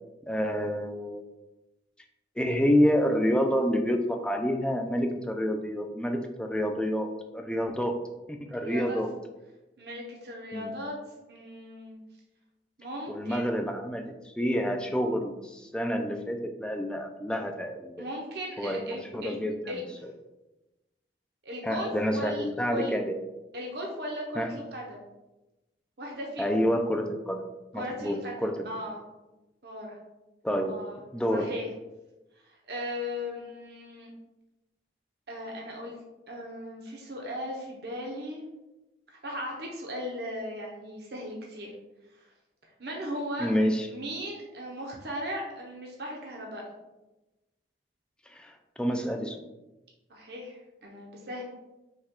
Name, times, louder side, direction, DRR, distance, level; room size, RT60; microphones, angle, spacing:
voice 1, 0.3-1.2 2.4-8.0 8.3-9.1 10.5-10.7 13.1-18.1 18.6-19.6 21.6-23.2 24.4-24.5 26.4-27.4 27.7-28.5 30.4-30.8 31.1-31.5 43.4-43.9 48.3-49.4, equal, 5° left, 4 dB, 0.3 m, -28 dB
voice 2, 8.6-9.0 9.8-10.9 11.3-12.0 12.8-13.4 18.0-19.4 19.7-20.1 21.4-22.9 23.5-25.0 26.0-26.6 27.7-29.0 29.6-30.0 30.7-31.0 31.3-31.7 32.4-34.1 35.3-38.4 39.1-41.7 42.1-42.2 42.8-43.5 43.9-46.6 50.1-51.4, equal, 60° right, -1 dB, 0.7 m, -37 dB
5.4 x 2.3 x 3.6 m, 1.0 s
head